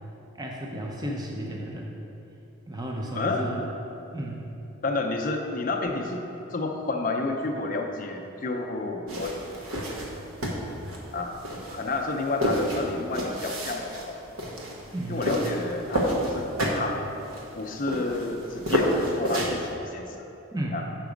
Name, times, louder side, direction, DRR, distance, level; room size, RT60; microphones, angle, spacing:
voice 1, 0.4-2.0 2.7-3.7 4.1-4.4 14.9-15.4 20.5-20.8, right 1 dB, 20° right, -1 dB, 0.6 m, -33 dB
voice 2, 3.2-3.5 4.8-6.2 6.5-9.3 11.1-11.3 11.7-14.2 15.1-17.0 17.5-20.2 20.7-20.8, left 3 dB, 40° left, 2 dB, 0.5 m, -30 dB
sound 1, 9.1-19.7, equal, 80° right, 1.1 m, -30 dB
6.9 x 5.9 x 5.1 m, 2.9 s
head